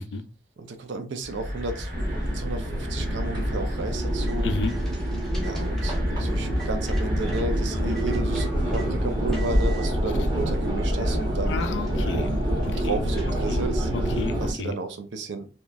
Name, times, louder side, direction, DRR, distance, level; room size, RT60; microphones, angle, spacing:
voice 1, 0.6-1.9 2.3-4.5 5.4-11.6 12.1-13.9 14.4-15.5, right 2 dB, 85° right, 7 dB, 0.5 m, -33 dB
sound 1, 1.2-13.7, equal, 65° right, 1.3 m, -33 dB
sound 2, 1.9-14.5, equal, 25° right, 0.8 m, -27 dB
sound 3, 4.0-7.4 7.9-8.9 9.3-9.9 10.6-10.7 11.0-13.8, right 2 dB, ahead, 0.5 m, -47 dB
voice 2, 4.4-4.7 11.4-12.3 12.6-13.0 13.5-13.6 13.9-14.7, left 4 dB, 80° left, 8 dB, 0.5 m, -31 dB
2.9 x 2.2 x 2.3 m, 0.33 s
head